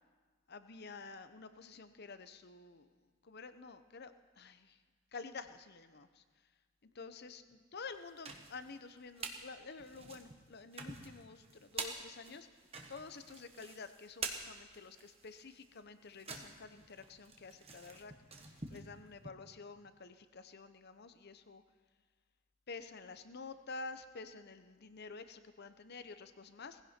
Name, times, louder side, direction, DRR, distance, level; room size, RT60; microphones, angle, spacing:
voice 1, 0.5-2.9 3.2-4.8 5.1-6.2 6.8-12.5 12.9-21.6 22.7-26.8, left 4 dB, 50° left, 11 dB, 0.8 m, -50 dB
sound 1, 7.9-9.4 9.8-19.3, right 4 dB, 30° right, 1.3 m, -47 dB
19.5 x 16.0 x 4.4 m, 1.5 s
head